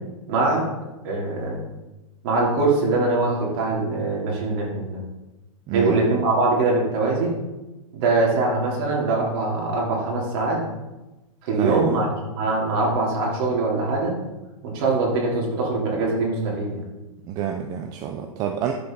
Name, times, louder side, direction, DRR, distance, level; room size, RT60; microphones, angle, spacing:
voice 1, 0.3-0.7 1.0-1.6 2.2-5.0 5.7-7.3 7.9-10.6 11.4-12.1 12.4-14.2 14.6-16.8, right 3 dB, 40° right, -3 dB, 3.4 m, -22 dB
voice 2, 5.7-6.2 11.5-12.0 17.3-18.7, right 9 dB, 20° right, 4 dB, 0.5 m, -28 dB
11.5 x 6.9 x 3.9 m, 1.0 s
hypercardioid pair, 155°, 18 cm